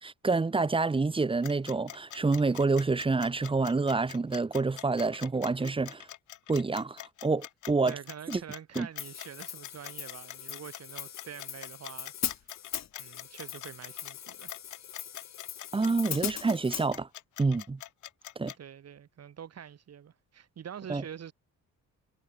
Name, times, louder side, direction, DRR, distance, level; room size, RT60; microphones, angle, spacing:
voice 1, 0.0-6.0 6.5-7.9 8.3-8.4 8.7-8.9 15.7-17.1 17.4-17.8 18.4-18.5 20.9-21.0, right 3 dB, 15° right, 1.1 m, -28 dB
sound 1, 1.4-18.6, left 13 dB, 75° left, 3.0 m, -44 dB
voice 2, 7.9-12.5 13.0-14.6 18.6-21.3, right 8 dB, 55° right, 4.2 m, -46 dB
Hi-hat, 9.0-16.9, left 10 dB, 60° left, 3.7 m, -40 dB
cardioid pair, 90°, 30 cm